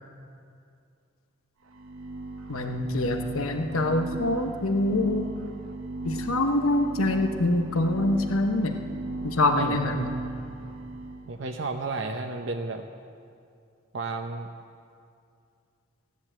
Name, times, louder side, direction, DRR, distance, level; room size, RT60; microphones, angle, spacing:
sound 1, 1.7-11.3, right 2 dB, 80° right, 1.1 m, -37 dB
voice 1, 2.5-5.3 6.0-8.8 9.2-10.1, left 2 dB, 85° left, 5 dB, 1.0 m, -25 dB
voice 2, 11.3-12.8 13.9-14.5, right 3 dB, 60° right, 4 dB, 0.7 m, -32 dB
16.5 x 10.5 x 7.6 m, 2.4 s
head